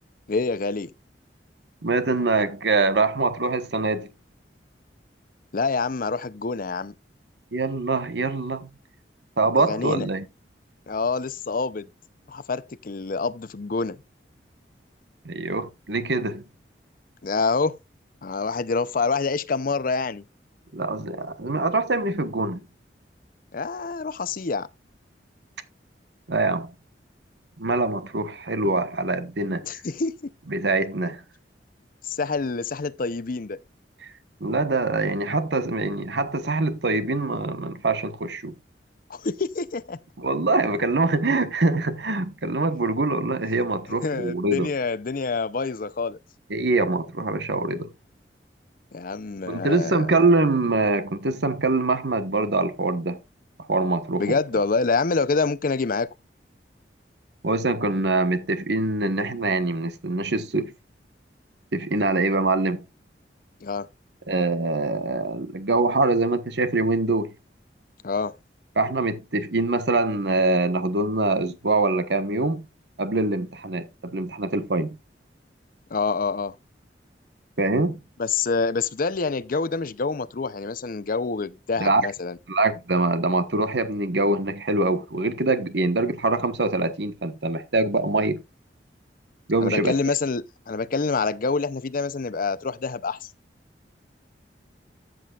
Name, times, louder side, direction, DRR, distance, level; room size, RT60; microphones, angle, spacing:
voice 1, 0.3-0.9 5.5-6.9 9.7-10.1 10.9-11.9 12.3-14.0 17.2-17.8 18.2-20.2 23.5-24.7 29.6-30.3 32.0-33.6 39.1-40.0 44.0-46.2 48.9-50.2 54.2-56.1 63.6-63.9 68.0-68.3 75.9-76.6 78.2-82.4 89.6-93.3, left 4 dB, 50° left, 0.6 m, -26 dB
voice 2, 1.8-4.1 7.5-8.7 9.4-10.3 15.2-16.4 20.7-22.6 26.3-26.7 27.6-29.8 30.5-31.2 34.0-34.1 34.4-38.5 40.2-44.7 46.5-47.9 49.5-53.2 53.7-54.3 57.4-60.7 61.7-62.8 64.3-67.3 68.8-72.7 73.0-75.0 77.6-78.0 81.8-82.0 82.5-88.4 89.5-89.9, right 2 dB, 70° right, 1.2 m, -24 dB
13.5 x 7.6 x 2.4 m
head